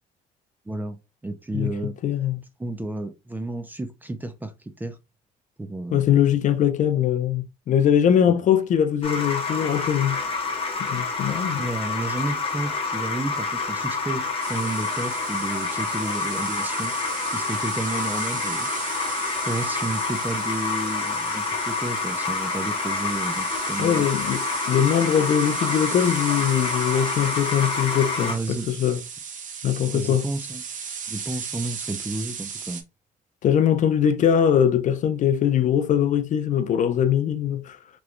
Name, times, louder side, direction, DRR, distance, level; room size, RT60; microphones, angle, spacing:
voice 1, 0.7-1.0 1.2-2.0 2.6-5.0 5.6-6.0 8.3-8.4 11.5-16.9 17.3-18.7 19.5-24.1 28.2-28.7 29.9-30.6 31.1-32.8, right 2 dB, 10° right, 0.5 m, -31 dB
voice 2, 2.0-2.4 5.9-10.2 10.8-11.7 23.8-29.0 29.6-30.3 33.4-37.8, left 9 dB, 50° left, 0.4 m, -21 dB
sound 1, 9.0-28.4, left 4 dB, 35° left, 1.0 m, -28 dB
sound 2, 14.4-32.8, right 6 dB, 50° right, 0.7 m, -36 dB
3.0 x 3.0 x 2.4 m
cardioid pair, 110°, 17 cm